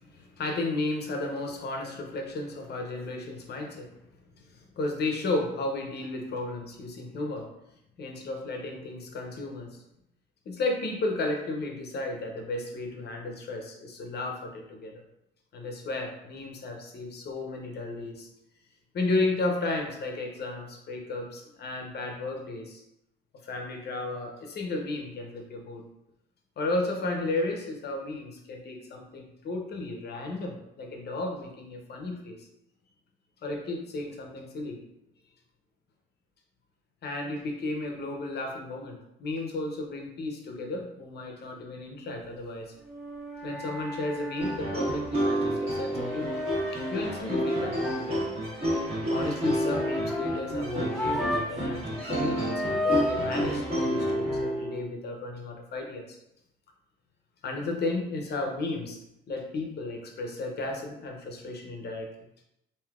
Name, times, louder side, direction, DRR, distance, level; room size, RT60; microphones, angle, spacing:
voice 1, 0.0-3.9 4.3-7.5 8.0-9.8 10.5-15.0 15.5-18.3 18.9-22.8 23.4-25.8 26.6-32.5 33.4-34.8 37.0-42.7 43.4-46.4 46.7-48.2 49.1-52.5 52.8-56.2 57.4-59.0 59.3-62.1, left 2 dB, 55° left, 2 dB, 0.7 m, -33 dB
sound 1, 42.8-51.7 51.9-53.4, left 2 dB, ahead, 0.4 m, -35 dB
Rogue Strings Rag, 44.4-54.8, right 1 dB, 30° right, 1.5 m, -30 dB
3.3 x 2.7 x 2.4 m, 0.82 s
cardioid pair, 90°, 20 cm